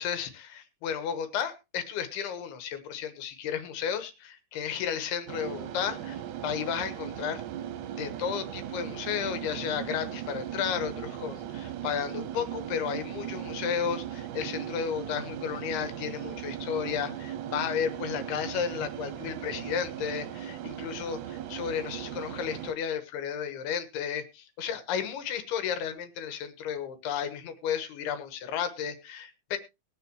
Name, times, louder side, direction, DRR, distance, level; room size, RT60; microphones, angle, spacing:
voice 1, 0.0-7.4 8.0-29.6, left 8 dB, 80° left, 9 dB, 3.3 m, -33 dB
sound 1, 5.3-22.7, right 11 dB, 70° right, 2.0 m, -38 dB
21.0 x 7.2 x 3.0 m, 0.25 s
omnidirectional pair, 4.5 m